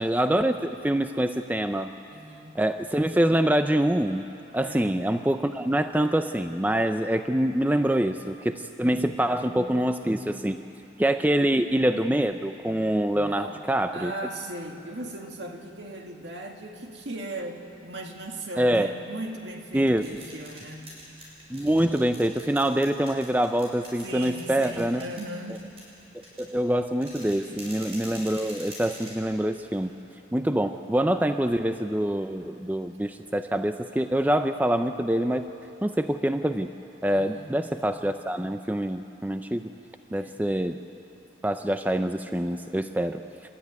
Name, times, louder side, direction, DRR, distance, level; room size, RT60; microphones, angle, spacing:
voice 1, 0.0-1.9 2.6-4.2 4.5-10.6 11.0-14.1 18.6-18.9 19.7-20.1 21.5-25.1 26.4-29.9 30.3-35.5 35.8-36.7 37.0-39.7 40.1-40.8 41.4-43.2, right 1 dB, 10° right, 8 dB, 0.5 m, -25 dB
voice 2, 2.1-2.6 4.6-4.9 13.1-13.6 13.9-21.0 24.0-25.6 27.3-27.7 37.1-37.6 40.1-40.4, right 1 dB, 70° right, 2 dB, 2.2 m, -38 dB
sound 1, 20.0-30.1, equal, 30° right, 6.3 m, -46 dB
29.0 x 13.5 x 9.5 m, 2.7 s
head